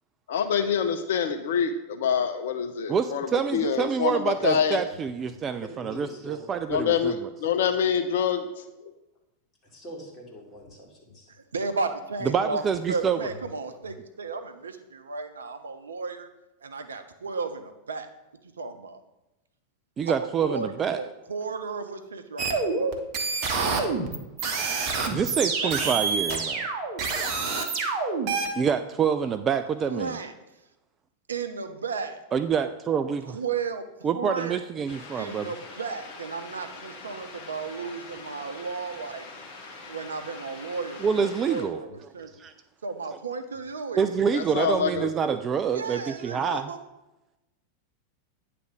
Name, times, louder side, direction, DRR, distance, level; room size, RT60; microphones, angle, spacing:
voice 1, 0.3-4.8 6.7-8.6 44.3-45.1, left 7 dB, 55° left, 7 dB, 0.5 m, -26 dB
voice 2, 2.9-7.3 12.2-13.2 20.0-21.0 25.1-26.6 28.5-30.2 32.3-33.4 34.0-35.5 41.0-41.8 42.4-42.5 44.0-46.7, right 7 dB, 25° right, 10 dB, 0.3 m, -27 dB
voice 3, 5.6-6.5 9.7-11.3, equal, 25° left, -2 dB, 2.4 m, -43 dB
voice 4, 11.3-12.6 12.9-16.3 16.6-18.1 18.6-19.0 20.1-22.9 25.6-25.8 26.3-26.7 29.9-30.3 31.3-32.2 33.2-34.6 35.1-39.5 39.9-42.3 42.8-44.2 45.7-46.8, right 4 dB, 70° right, 8 dB, 0.6 m, -34 dB
sound 1, 22.4-28.5, right 4 dB, 40° right, 1.1 m, -27 dB
sound 2, 34.9-41.6, left 3 dB, 40° left, 1.2 m, -44 dB
9.2 x 3.4 x 6.2 m, 0.99 s
figure-of-eight pair, 90°, 0 cm